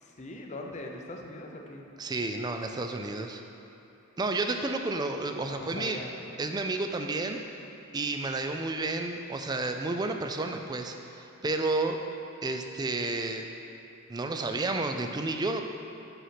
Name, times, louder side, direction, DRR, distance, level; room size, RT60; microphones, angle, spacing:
voice 1, 0.0-1.8 5.4-6.1, left 2 dB, 30° left, 1 dB, 0.6 m, -41 dB
voice 2, 2.0-3.4 4.2-6.0 6.4-7.4 7.9-12.0 12.4-13.5 14.1-15.6, right 2 dB, 20° right, 5 dB, 0.3 m, -31 dB
5.6 x 5.6 x 5.8 m, 3.0 s
head